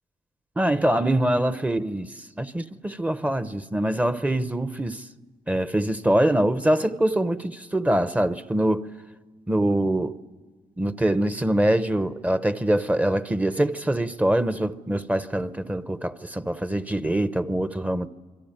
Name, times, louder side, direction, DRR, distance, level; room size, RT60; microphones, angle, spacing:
voice 1, 0.6-5.0 5.5-8.9 9.5-10.1 10.8-18.1, right 1 dB, 10° right, 0.8 m, -24 dB
27.0 x 23.5 x 9.0 m
cardioid pair, 130°, 14 cm